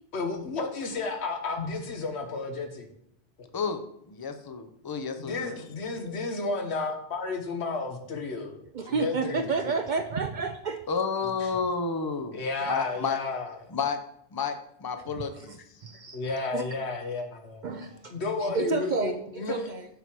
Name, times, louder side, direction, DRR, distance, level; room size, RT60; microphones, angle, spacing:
voice 1, 0.1-2.9 3.4-3.5 5.2-9.7 11.4-11.6 12.3-13.6 16.1-17.6 18.1-19.7, left 3 dB, 75° left, 5 dB, 1.3 m, -32 dB
voice 2, 3.5-5.6 10.9-12.4 12.7-13.2 13.7-14.0 14.3-15.6, left 5 dB, 25° left, 8 dB, 0.5 m, -31 dB
voice 3, 8.7-10.8 15.1-15.5 15.8-16.2 16.5-16.6 17.6-18.1 18.4-19.9, right 4 dB, 55° right, 7 dB, 0.5 m, -30 dB
6.8 x 4.6 x 6.0 m, 0.72 s
omnidirectional pair, 1.1 m